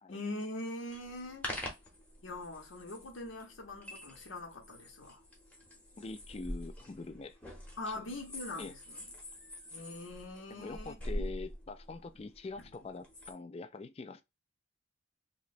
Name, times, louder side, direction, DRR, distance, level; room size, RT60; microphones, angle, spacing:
voice 1, 0.1-1.5 2.2-5.2 7.8-9.0 9.7-10.9, left 2 dB, 90° left, 0.8 m, -42 dB
sound 1, 0.9-13.3, equal, 5° left, 0.8 m, -45 dB
voice 2, 6.0-7.4 7.8-8.0 8.6-8.7 10.5-14.2, left 3 dB, 30° left, 0.3 m, -44 dB
2.9 x 2.1 x 4.0 m
head